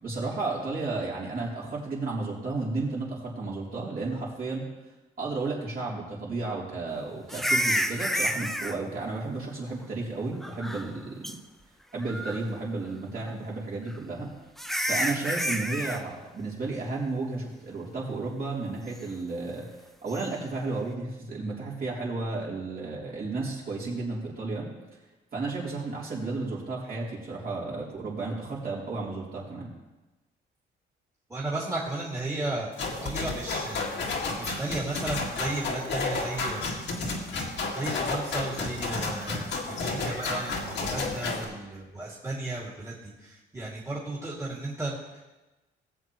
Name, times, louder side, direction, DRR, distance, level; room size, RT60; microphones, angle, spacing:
voice 1, 0.0-4.6 5.2-11.4 11.9-14.3 14.9-19.7 20.0-24.7 25.3-29.7, right 3 dB, 50° right, -5 dB, 3.5 m, -33 dB
sound 1, 7.3-8.8 10.4-11.0 11.2-11.4 12.0-12.5 13.9-14.0 14.6-16.0 20.1-20.3, equal, ahead, 0.6 m, -29 dB
voice 2, 31.3-33.9 34.4-36.7 37.4-45.2, right 2 dB, 15° right, -6 dB, 2.4 m, -34 dB
sound 2, 32.8-41.4, left 3 dB, 65° left, 2.0 m, -31 dB
18.5 x 7.5 x 3.1 m, 1.1 s
cardioid pair, 90°, 20 cm